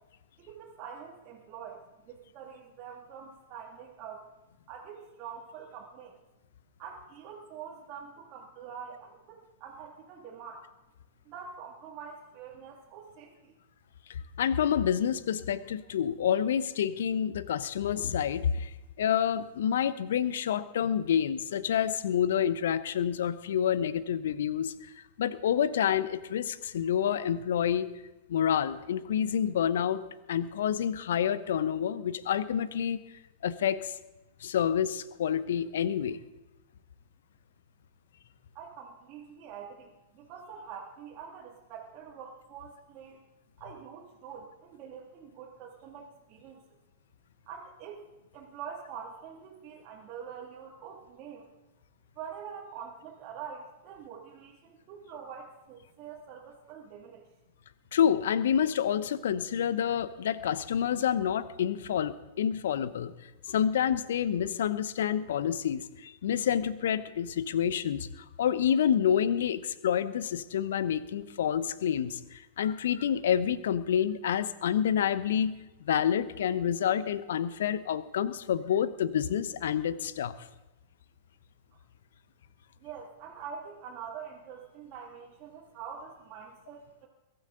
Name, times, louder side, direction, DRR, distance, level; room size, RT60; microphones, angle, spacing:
voice 1, 0.4-4.3 4.7-6.2 6.8-10.7 11.2-13.6 38.5-43.2 43.6-46.6 47.5-48.0 48.3-51.5 52.2-57.3 81.7-81.8 82.8-87.1, right 7 dB, 40° right, -3 dB, 2.3 m, -45 dB
voice 2, 14.1-18.7 19.0-24.7 25.2-27.9 28.3-30.0 30.3-33.0 33.4-33.9 34.4-36.2 57.9-63.1 63.5-68.1 68.4-75.6 75.8-80.3, left 9 dB, 65° left, 15 dB, 0.8 m, -28 dB
22.5 x 13.0 x 3.9 m, 1.1 s
figure-of-eight pair, 100°, 0 cm